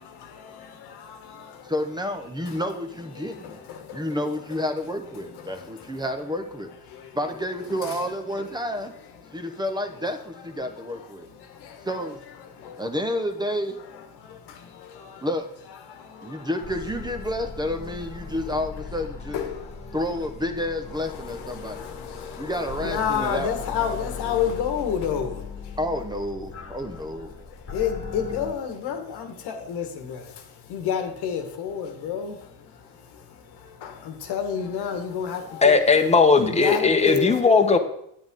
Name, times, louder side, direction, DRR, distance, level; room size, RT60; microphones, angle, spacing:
voice 1, 1.7-3.6 3.9-6.7 7.1-8.9 9.3-11.3 11.8-12.2 12.8-13.8 15.2-15.5 16.2-19.4 19.9-21.9 22.4-24.0 25.8-27.3 28.9-29.0, left 1 dB, 10° right, 6 dB, 0.8 m, -30 dB
sound 1, 16.6-28.5, left 5 dB, 35° left, 1.4 m, -39 dB
voice 2, 22.8-25.3 27.7-29.3 29.7-29.8 30.7-32.3 34.3-35.7 36.4-37.8, left 7 dB, 90° left, 5 dB, 1.4 m, -27 dB
voice 3, 35.6-37.8, left 4 dB, 15° left, 5 dB, 1.0 m, -18 dB
9.0 x 8.8 x 3.7 m, 0.72 s
cardioid pair, 95°, 38 cm